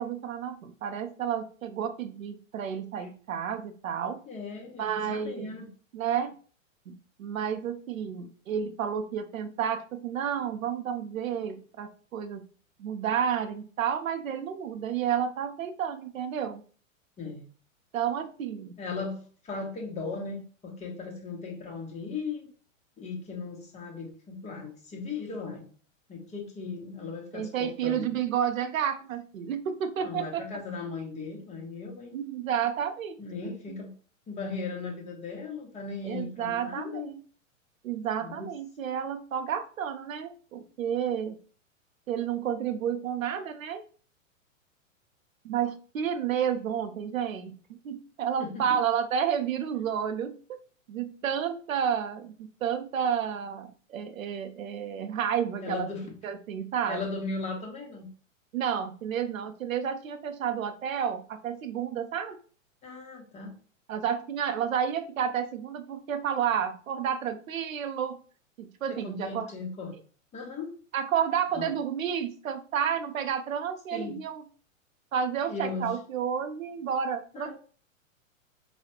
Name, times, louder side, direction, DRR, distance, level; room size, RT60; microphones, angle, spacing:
voice 1, 0.0-4.2 4.8-5.6 5.9-6.3 6.9-12.4 12.8-16.6 17.9-18.7 27.3-30.6 32.1-33.2 33.4-33.5 36.0-37.2 37.8-41.4 42.1-43.8 45.4-47.6 47.8-50.6 50.9-57.0 58.5-62.4 63.9-68.2 68.6-69.5 70.9-74.4 75.1-77.5, right 8 dB, 75° right, 9 dB, 0.6 m, -31 dB
voice 2, 4.3-5.7 17.2-17.4 18.8-22.5 23.0-25.7 26.1-28.1 30.0-32.1 33.2-33.9 34.3-37.1 38.2-38.5 48.4-48.8 55.6-56.0 56.9-58.1 62.8-63.5 68.9-69.9 70.3-70.7 71.5-71.7 73.9-74.1 75.5-75.9 77.3-77.5, left 4 dB, 15° left, 0 dB, 1.0 m, -37 dB
5.0 x 2.3 x 2.8 m, 0.42 s
hypercardioid pair, 110°, 41 cm